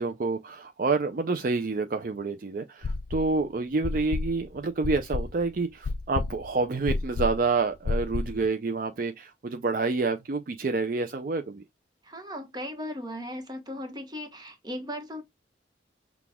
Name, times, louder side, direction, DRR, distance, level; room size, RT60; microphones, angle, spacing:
voice 1, 0.0-11.6, right 3 dB, 50° right, 0.4 m, -28 dB
sound 1, 2.8-3.4 3.8-8.5, left 3 dB, 65° left, 0.4 m, -31 dB
voice 2, 12.0-15.2, equal, 25° right, 1.1 m, -37 dB
5.9 x 2.4 x 3.5 m
head